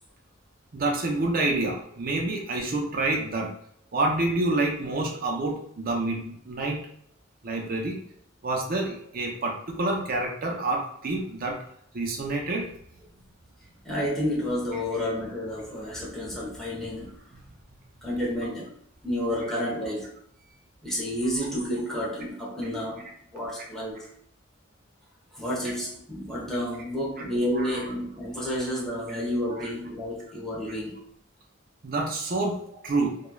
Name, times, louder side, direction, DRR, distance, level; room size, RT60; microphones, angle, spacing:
voice 1, 0.7-3.5 3.9-6.8 7.4-8.0 8.4-11.6 11.9-12.7 23.6-23.7 27.5-27.9 29.6-29.7 31.8-33.2, right 2 dB, 45° right, 1 dB, 0.6 m, -28 dB
voice 2, 13.8-17.1 18.0-18.7 19.0-20.1 20.8-24.1 25.3-31.0, equal, ahead, -7 dB, 0.9 m, -30 dB
3.0 x 2.3 x 2.2 m, 0.64 s
head